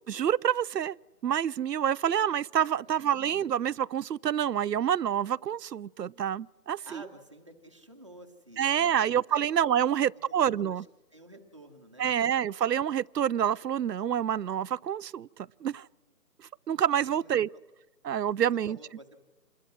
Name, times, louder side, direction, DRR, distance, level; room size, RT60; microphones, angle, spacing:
voice 1, 0.1-1.0 1.2-7.0 8.6-10.8 12.0-15.3 15.6-15.9 16.7-17.5 18.0-18.8, right 9 dB, 85° right, 0.6 m, -27 dB
voice 2, 2.6-3.2 6.8-9.0 9.3-9.4 9.9-12.1 17.0-17.6 18.4-19.2, right 1 dB, 20° right, 1.2 m, -51 dB
27.5 x 20.5 x 6.2 m
hypercardioid pair, 175°, 48 cm